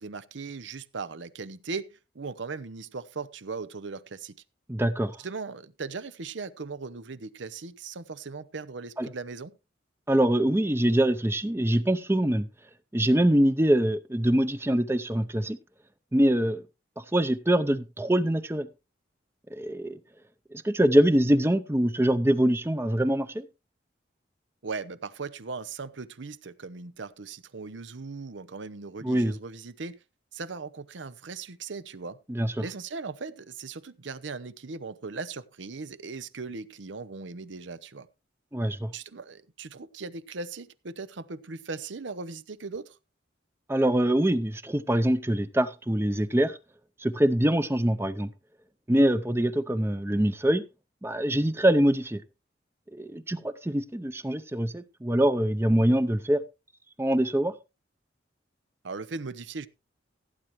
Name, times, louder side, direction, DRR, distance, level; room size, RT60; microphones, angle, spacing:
voice 1, 0.0-4.3 5.2-9.5 24.6-30.0 30.3-32.2 32.6-38.1 38.9-43.0 58.8-59.7, right 4 dB, 80° right, 0.8 m, -38 dB
voice 2, 4.7-5.2 9.0-9.1 10.1-12.5 12.9-15.6 16.1-16.6 17.0-18.7 19.5-20.0 20.6-23.5 29.0-29.3 32.3-32.5 38.5-38.9 43.7-46.6 47.0-48.3 48.9-50.6 51.0-52.2 52.9-56.4 57.0-57.5, right 1 dB, 15° right, 0.6 m, -24 dB
16.0 x 8.8 x 3.1 m
head